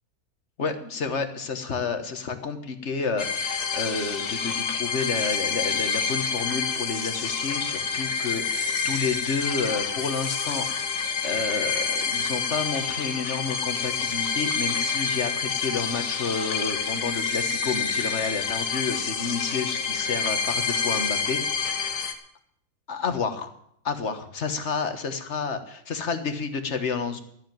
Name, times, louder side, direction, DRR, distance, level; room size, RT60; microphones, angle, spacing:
voice 1, 0.6-22.1 22.9-23.5 23.8-27.2, left 5 dB, 50° left, 8 dB, 1.5 m, -30 dB
sound 1, 3.2-22.1, left 5 dB, 85° left, 1.8 m, -28 dB
14.0 x 7.3 x 9.1 m, 0.70 s
omnidirectional pair, 1.6 m